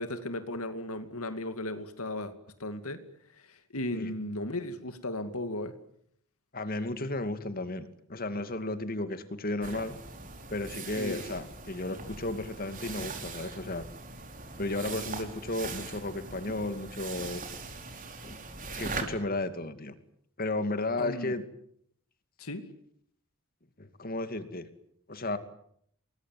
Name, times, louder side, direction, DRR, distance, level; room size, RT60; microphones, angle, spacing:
voice 1, 0.0-2.3 2.6-3.0 3.5-5.7 11.0-11.2 21.0-21.3 22.4-22.6, left 1 dB, 80° left, 9 dB, 2.5 m, -35 dB
voice 2, 6.5-10.0 10.5-13.9 14.6-17.4 18.2-18.4 18.7-19.9 20.4-21.4 23.8-24.7 25.1-25.4, left 2 dB, 40° left, 10 dB, 2.5 m, -34 dB
sound 1, 9.6-19.0, right 4 dB, 40° right, 4.7 m, -41 dB
29.0 x 21.0 x 9.4 m, 0.70 s
head